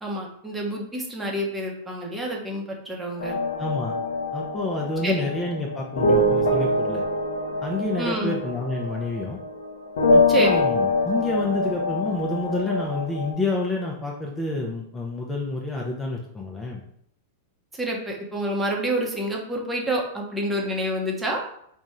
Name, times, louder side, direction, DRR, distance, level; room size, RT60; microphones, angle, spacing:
voice 1, 0.0-3.4 5.0-5.3 8.0-8.4 10.3-10.6 17.7-21.4, right 1 dB, 15° right, -1 dB, 1.0 m, -28 dB
sound 1, 3.2-13.3, left 1 dB, 80° left, 0.9 m, -24 dB
voice 2, 3.6-3.9 4.3-7.0 7.6-9.4 10.1-16.8, left 2 dB, 15° left, -2 dB, 0.8 m, -28 dB
3.5 x 2.4 x 4.2 m, 0.70 s
hypercardioid pair, 110°, 0 cm